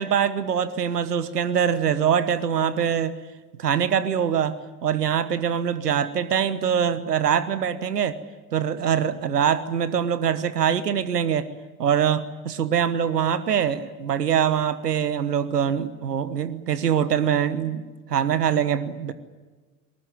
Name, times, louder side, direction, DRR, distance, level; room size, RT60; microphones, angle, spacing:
voice 1, 0.0-3.2 3.6-8.2 8.5-11.5 11.8-19.1, right 8 dB, 85° right, 15 dB, 1.2 m, -23 dB
23.0 x 20.5 x 9.6 m, 1.3 s
figure-of-eight pair, 60°, 46 cm